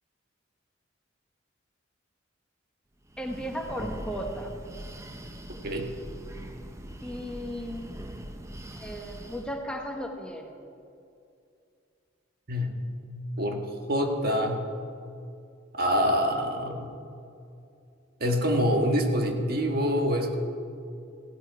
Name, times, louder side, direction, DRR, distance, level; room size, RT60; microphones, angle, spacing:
Breathing, 3.0-9.7, right 1 dB, 15° right, 0.7 m, -42 dB
voice 1, 3.2-4.5 7.0-8.0 8.8-10.5, equal, 5° left, 2 dB, 1.0 m, -35 dB
voice 2, 13.4-14.6 15.7-16.9 18.2-20.4, equal, 55° right, 3 dB, 1.5 m, -26 dB
16.0 x 12.5 x 4.7 m, 2.5 s
head